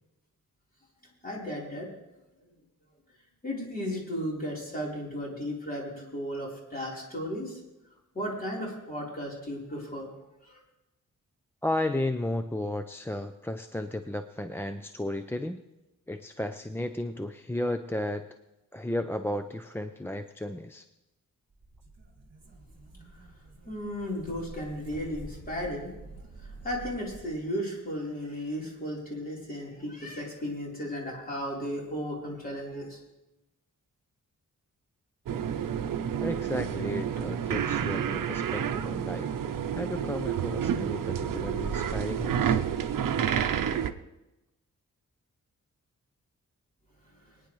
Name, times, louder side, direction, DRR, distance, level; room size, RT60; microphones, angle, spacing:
voice 1, 1.2-1.9 3.4-7.6 8.1-10.1 10.4-10.6 23.1-23.3 23.6-25.9 26.4-33.0 47.2-47.3, equal, 25° left, -4 dB, 3.8 m, -35 dB
voice 2, 11.6-15.6 16.1-18.2 18.7-20.8 36.2-39.3 39.7-42.6, left 1 dB, 10° left, 8 dB, 0.4 m, -33 dB
sound 1, 21.5-27.5, right 2 dB, 35° right, 1.9 m, -48 dB
sound 2, 35.3-43.9, right 8 dB, 85° right, 0.7 m, -29 dB
24.0 x 9.7 x 3.1 m, 0.99 s
wide cardioid pair, 155°, 32 cm